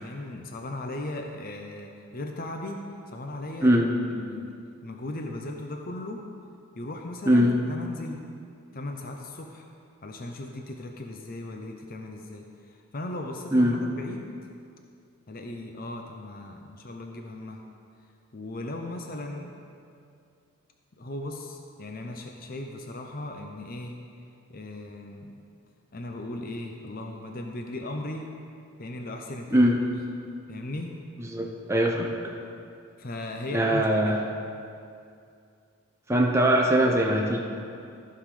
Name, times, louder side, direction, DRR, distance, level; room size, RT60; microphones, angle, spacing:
voice 1, 0.0-4.5 4.8-6.2 6.8-8.2 8.7-9.7 10.0-14.3 15.3-17.6 18.3-19.5 21.0-24.0 24.5-25.3 25.9-28.3 28.8-29.7 30.5-30.9 33.0-34.3, left 1 dB, 40° left, 3 dB, 0.6 m, -37 dB
voice 2, 31.2-32.1 33.5-34.2 36.1-37.4, equal, 10° right, -1 dB, 0.8 m, -21 dB
15.0 x 5.8 x 4.9 m, 2.4 s
head